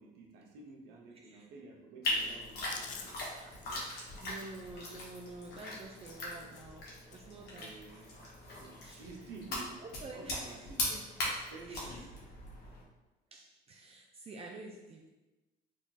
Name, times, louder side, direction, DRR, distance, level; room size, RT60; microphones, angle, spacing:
voice 1, 0.0-3.2 3.6-3.8 7.5-8.2 8.6-11.0 11.5-12.1, right 3 dB, 90° right, 0 dB, 0.8 m, -51 dB
sound 1, 2.0-12.8, left 1 dB, 65° left, 1.2 m, -40 dB
Chewing mastication, 2.6-6.8 7.1-7.4 7.7-8.6 8.8-9.1 9.4-10.1 10.5-10.6 11.7-12.1, left 6 dB, 50° left, 0.5 m, -52 dB
voice 2, 2.9-7.7 8.8-9.1 9.8-10.6 10.9-11.0 11.4-12.1 13.3-15.1, right 3 dB, 35° right, 0 dB, 0.4 m, -50 dB
3.6 x 2.3 x 4.0 m, 1.1 s
cardioid pair, 110°, 17 cm